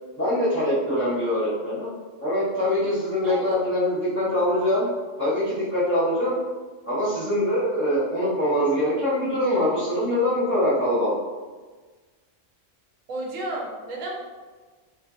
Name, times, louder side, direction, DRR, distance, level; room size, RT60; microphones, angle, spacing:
voice 1, 0.1-1.9 2.2-4.9 5.2-6.4 6.8-11.2, left 1 dB, 10° left, -12 dB, 0.9 m, -23 dB
voice 2, 3.2-3.6 13.1-14.1, right 2 dB, 85° right, -1 dB, 1.0 m, -32 dB
2.5 x 2.4 x 2.3 m, 1.4 s
omnidirectional pair, 1.3 m